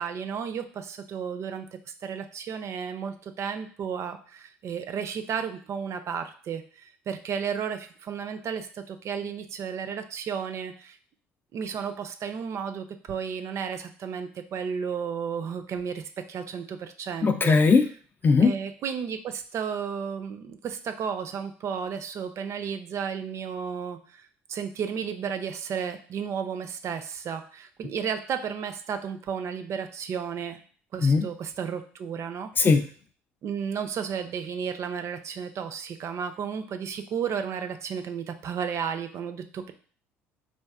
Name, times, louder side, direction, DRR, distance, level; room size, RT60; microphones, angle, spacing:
voice 1, 0.0-11.0 11.5-17.6 18.4-24.2 24.5-30.6 30.9-32.5 33.4-39.7, right 7 dB, 50° right, 8 dB, 0.4 m, -33 dB
voice 2, 17.2-17.9 18.2-18.5 31.0-31.3 32.6-32.9, left 4 dB, 30° left, 8 dB, 0.4 m, -19 dB
3.3 x 2.6 x 2.3 m, 0.43 s
hypercardioid pair, 65°, 6 cm